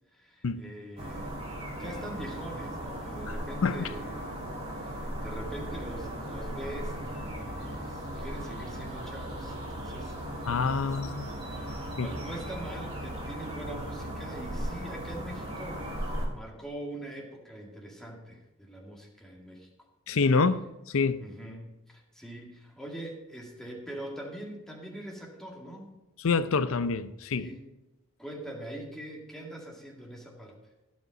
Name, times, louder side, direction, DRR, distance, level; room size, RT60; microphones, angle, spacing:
voice 1, 0.1-4.4 4.8-19.7 21.2-25.9 27.4-27.6 28.2-30.6, right 1 dB, ahead, 2.1 m, -43 dB
sound 1, 1.0-16.3, right 1 dB, 30° right, 2.7 m, -37 dB
voice 2, 10.5-11.3 12.0-12.1 20.1-21.3 26.2-27.5, left 4 dB, 65° left, 0.5 m, -27 dB
16.0 x 5.4 x 5.4 m
head